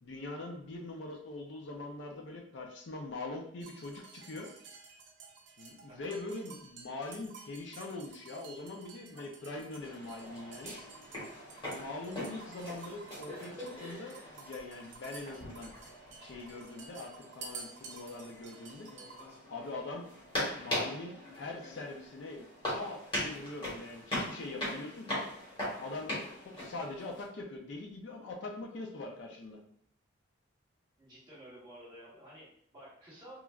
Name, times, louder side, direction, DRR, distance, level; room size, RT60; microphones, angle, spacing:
voice 1, 0.0-4.5 5.6-10.8 11.6-15.7 16.2-18.9 19.5-20.1 20.6-25.2 25.8-29.6, left 2 dB, 65° left, 1 dB, 0.4 m, -43 dB
sound 1, 3.6-19.2, right 4 dB, 60° right, 0.5 m, -52 dB
sound 2, 9.8-27.3, left 1 dB, 25° left, 1.1 m, -41 dB
voice 2, 31.0-33.4, right 1 dB, 20° right, -8 dB, 1.1 m, -52 dB
3.0 x 2.3 x 2.3 m, 0.63 s
head